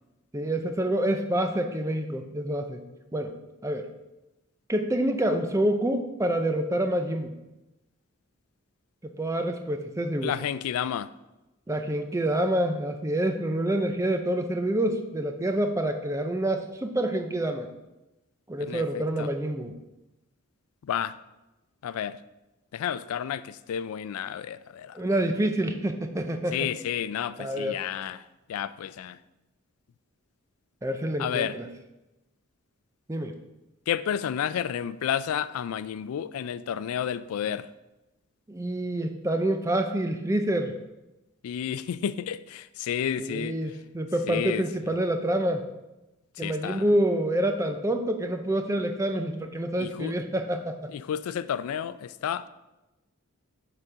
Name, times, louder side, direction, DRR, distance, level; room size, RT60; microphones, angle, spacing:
voice 1, 0.3-2.8 3.1-3.4 3.6-3.9 4.7-7.4 9.2-10.3 11.7-17.7 18.5-19.7 24.9-26.7 27.4-27.8 30.8-31.7 33.1-33.4 38.5-40.7 43.2-45.6 46.4-50.9, right 1 dB, 15° right, 0.4 m, -27 dB
voice 2, 10.2-11.1 18.7-19.3 20.9-21.1 21.8-22.2 22.7-24.9 26.5-28.2 28.5-29.2 31.2-31.5 33.9-37.7 41.4-43.6 44.3-44.6 46.4-46.8 49.8-50.1 50.9-52.4, left 9 dB, 75° left, 0.3 m, -31 dB
6.6 x 4.2 x 4.9 m
head